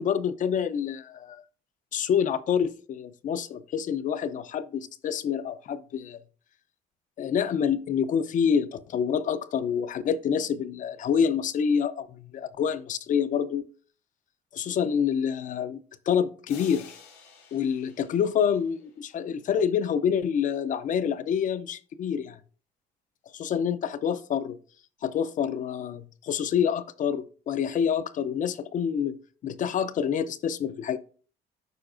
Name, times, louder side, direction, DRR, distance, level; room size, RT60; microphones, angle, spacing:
voice 1, 0.0-1.4 1.9-6.2 7.2-13.7 14.5-15.8 16.1-16.9 17.5-22.4 23.3-24.6 25.0-29.2 29.4-31.0, left 7 dB, 50° left, 0.6 m, -27 dB
sound 1, 16.5-19.3, left 6 dB, 90° left, 2.7 m, -50 dB
12.0 x 4.6 x 2.5 m
cardioid pair, 110°, 17 cm